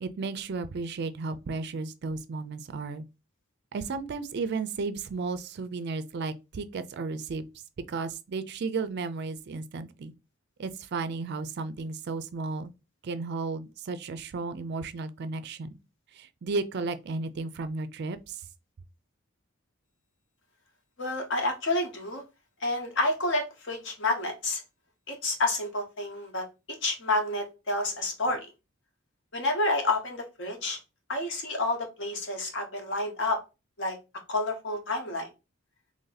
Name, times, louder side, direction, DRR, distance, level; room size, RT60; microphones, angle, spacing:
voice 1, 0.0-3.0 3.7-7.4 7.9-10.1 10.6-12.7 13.0-15.7 16.1-18.4, right 4 dB, 50° right, 0.4 m, -34 dB
voice 2, 21.0-22.2 22.6-24.6 25.1-26.4 26.8-28.5 29.3-30.8 31.1-33.4 33.8-34.0 34.3-35.3, left 2 dB, 60° left, 1.1 m, -29 dB
3.0 x 2.7 x 3.9 m
head